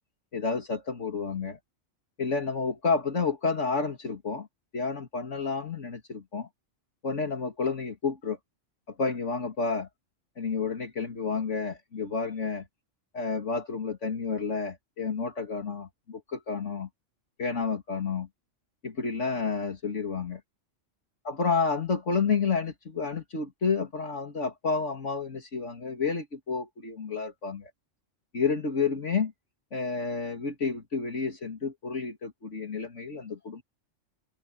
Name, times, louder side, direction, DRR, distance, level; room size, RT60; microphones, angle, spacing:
voice 1, 0.3-1.6 2.2-4.5 4.7-6.5 7.0-8.4 8.9-9.9 10.4-12.6 13.1-16.9 17.4-18.3 18.8-20.4 21.2-27.7 28.3-29.3 29.7-33.6, left 5 dB, 70° left, 2.7 m, -30 dB
omnidirectional pair, 1.3 m